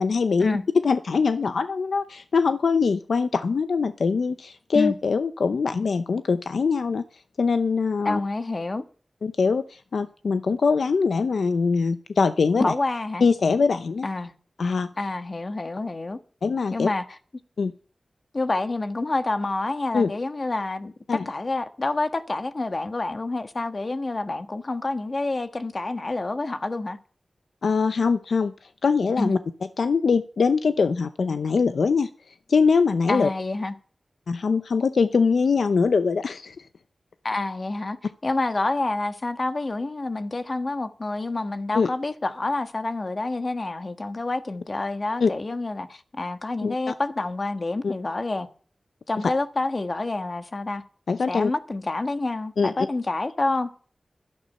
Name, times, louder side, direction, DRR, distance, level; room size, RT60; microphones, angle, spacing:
voice 1, 0.0-7.0 7.4-8.2 9.2-12.7 13.2-14.0 14.6-14.9 16.4-16.9 17.6-17.7 19.9-20.1 21.1-21.3 27.6-28.5 28.8-29.4 29.8-32.1 32.5-33.3 34.3-36.6 41.7-41.9 45.2-45.3 46.6-46.9 47.8-47.9 51.1-51.5 52.6-52.9, left 5 dB, 85° left, 0.6 m, -22 dB
voice 2, 8.0-8.8 12.6-13.2 14.0-14.3 15.0-16.2 16.7-17.0 18.3-27.0 29.2-29.4 33.1-33.7 37.2-38.0 38.2-48.5 49.1-50.8 51.3-53.7, left 2 dB, 50° left, 1.4 m, -28 dB
12.5 x 10.5 x 5.6 m
cardioid pair, 45°, 0 cm